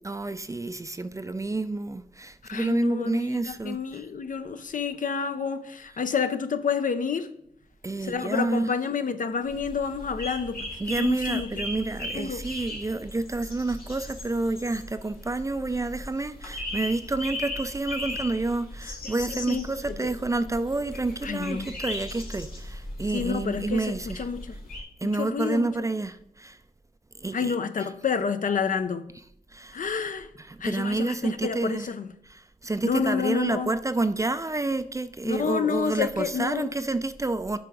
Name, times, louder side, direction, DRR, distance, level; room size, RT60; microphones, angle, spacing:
voice 1, 0.0-4.0 7.8-8.7 10.8-24.3 25.0-26.6 27.2-27.6 29.5-29.8 30.5-31.9 32.3-37.6, right 2 dB, 20° right, 0.3 m, -29 dB
voice 2, 2.4-7.3 8.0-11.5 12.1-12.4 19.0-19.9 21.2-21.7 23.1-24.6 25.0-25.7 27.3-29.0 29.7-30.3 30.6-32.1 32.8-33.7 35.2-36.8, left 6 dB, 60° left, 0.5 m, -29 dB
sound 1, 9.4-24.8, left 1 dB, 80° left, 1.7 m, -38 dB
6.8 x 3.5 x 4.8 m
cardioid pair, 65°, 15 cm